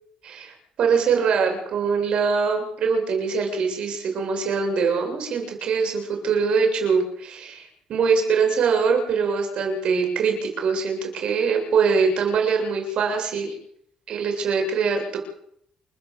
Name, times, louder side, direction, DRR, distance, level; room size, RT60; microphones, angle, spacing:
voice 1, 0.2-13.5 14.1-15.2, right 5 dB, 55° right, 3 dB, 7.7 m, -23 dB
29.0 x 11.0 x 8.1 m, 0.68 s
cardioid pair, 160°, 2 cm